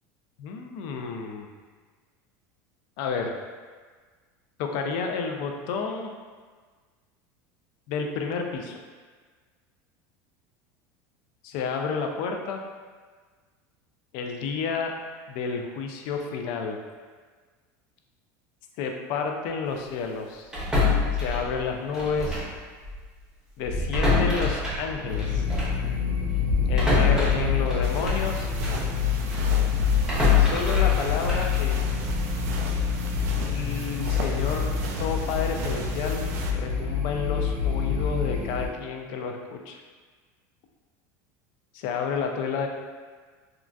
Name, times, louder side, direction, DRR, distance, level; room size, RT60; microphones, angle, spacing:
voice 1, 0.4-1.5 3.0-3.3 4.6-6.1 7.9-8.7 11.4-12.6 14.1-14.9 15.3-16.8 18.8-20.5 21.2-22.4 23.6-25.5 26.7-28.5 30.3-31.8 33.4-34.7 35.0-36.3 36.5-39.8 41.7-42.7, left 5 dB, 60° left, 3 dB, 0.4 m, -30 dB
sound 1, 20.5-22.6 22.8-23.0 23.6-28.9 29.3-32.4, left 3 dB, 5° right, 0.7 m, -26 dB
sound 2, 25.1-38.7, left 7 dB, 50° right, 0.7 m, -27 dB
sound 3, 27.8-36.5, right 3 dB, 80° right, 0.4 m, -37 dB
3.7 x 2.3 x 2.2 m, 1.5 s
supercardioid pair, 145°, 8 cm